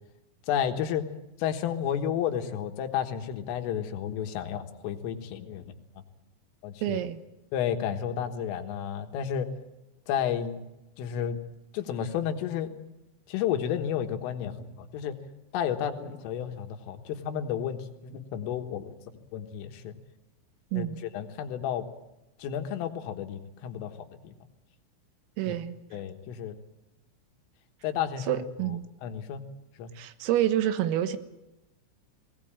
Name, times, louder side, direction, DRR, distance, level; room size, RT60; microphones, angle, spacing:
voice 1, 0.5-1.0 1.4-5.7 6.6-7.0 7.5-9.5 10.1-10.6 11.0-11.4 11.7-12.7 13.3-15.2 15.5-19.0 19.3-20.0 20.7-20.9 21.1-21.9 22.4-23.9 24.2-24.4 25.5-25.6 25.9-26.6 27.8-28.4 29.0-29.4 29.8-29.9, left 9 dB, 75° left, 6 dB, 3.9 m, -31 dB
voice 2, 6.8-7.2 20.7-21.0 25.4-25.8 28.3-28.8 30.0-31.2, right 12 dB, 85° right, 11 dB, 4.0 m, -28 dB
20.5 x 18.5 x 8.8 m, 0.96 s
omnidirectional pair, 5.9 m